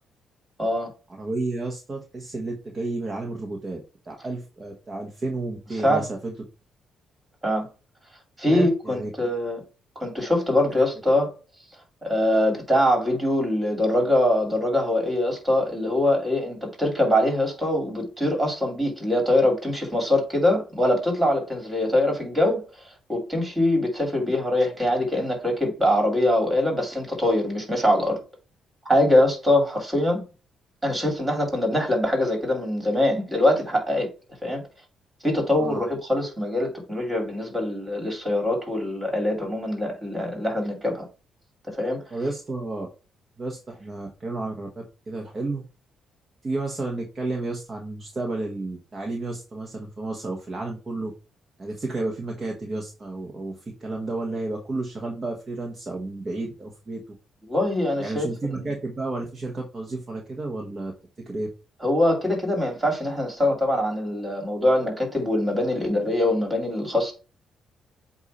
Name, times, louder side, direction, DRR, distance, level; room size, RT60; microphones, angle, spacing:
voice 1, 0.6-0.9 5.8-6.0 7.4-7.7 8.4-9.6 10.0-11.3 12.0-22.6 23.1-28.2 28.9-30.2 30.8-34.1 34.4-34.6 35.2-41.0 41.7-42.0 57.5-58.7 61.8-67.1, left 1 dB, 20° right, 2.8 m, -23 dB
voice 2, 1.1-6.3 8.4-9.1 10.7-10.8 35.6-35.8 42.1-42.9 43.4-45.6 46.4-51.1 51.6-57.0 58.0-60.9 61.3-61.5, right 2 dB, 35° right, 1.3 m, -31 dB
8.1 x 2.8 x 4.2 m
cardioid pair, 90°, 0 cm